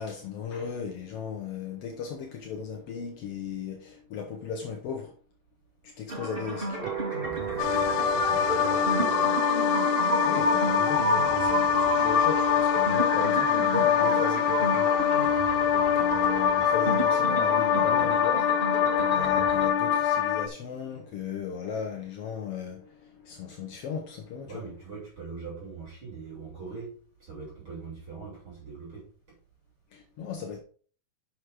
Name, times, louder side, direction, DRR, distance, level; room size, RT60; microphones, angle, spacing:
voice 1, 0.0-5.1 5.8-6.9 7.8-7.9 8.3-8.6 10.0-18.4 19.0-24.7 29.9-30.6, left 6 dB, 70° left, 1.4 m, -37 dB
sound 1, 6.1-19.7, equal, 20° right, 1.7 m, -30 dB
sound 2, 6.8-12.9, right 14 dB, 85° right, 1.9 m, -39 dB
voice 2, 7.2-9.4 12.8-13.0 17.8-18.1 24.5-26.9 27.2-29.0, right 4 dB, 35° right, 3.2 m, -41 dB
sound 3, 7.6-20.5, left 9 dB, 90° left, 2.5 m, -24 dB
6.5 x 5.9 x 4.9 m
omnidirectional pair, 4.2 m